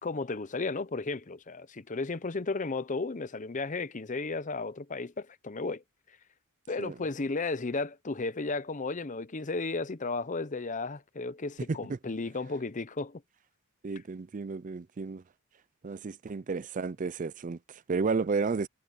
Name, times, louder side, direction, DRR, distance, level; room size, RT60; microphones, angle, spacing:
voice 1, 0.0-5.8 6.7-13.2, left 3 dB, 35° left, 0.7 m, -34 dB
voice 2, 13.8-15.2 15.8-18.7, right 4 dB, 35° right, 0.4 m, -32 dB
head